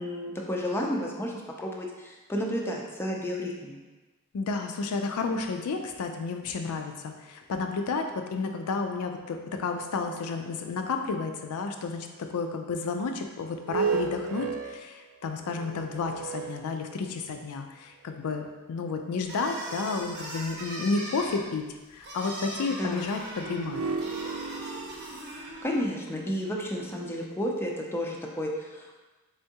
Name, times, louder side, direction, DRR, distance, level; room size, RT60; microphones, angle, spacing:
voice 1, 0.0-1.3 1.6-3.8 22.8-23.1 25.6-29.0, equal, 10° left, -1 dB, 0.4 m, -32 dB
voice 2, 4.3-18.4 18.7-21.6 21.9-23.8, left 4 dB, 75° left, 5 dB, 0.4 m, -31 dB
sound 1, 13.5-17.3 18.1-18.2 23.4-27.6, right 5 dB, 75° right, 0.4 m, -35 dB
sound 2, 19.2-25.9, right 1 dB, 50° right, 0.8 m, -40 dB
3.6 x 3.4 x 2.7 m, 1.2 s
head